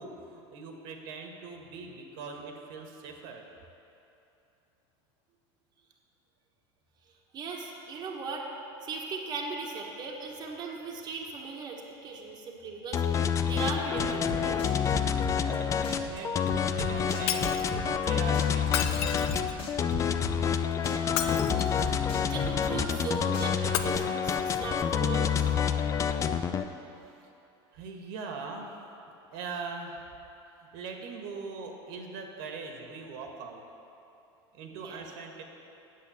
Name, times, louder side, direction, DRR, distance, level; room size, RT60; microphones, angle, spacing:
voice 1, 0.0-3.4 15.4-19.0 27.7-28.8 29.3-30.1 30.6-33.6 34.5-35.4, right 4 dB, 65° right, 3 dB, 1.5 m, -41 dB
voice 2, 7.3-8.5 8.8-13.0 13.5-14.7 20.8-25.5 34.7-35.0, right 4 dB, 30° right, -2 dB, 1.4 m, -38 dB
sound 1, 12.9-26.6, left 7 dB, 25° left, 0.4 m, -28 dB
sound 2, 14.0-15.6 15.8-18.1 18.3-20.6 20.8-23.1 23.3-24.0, left 2 dB, 40° left, 1.6 m, -37 dB
Shatter, 17.3-17.7 18.6-19.7 21.0-21.9 23.7-23.8, left 10 dB, 75° left, 0.7 m, -32 dB
8.8 x 8.2 x 7.1 m, 2.9 s
supercardioid pair, 130°, 14 cm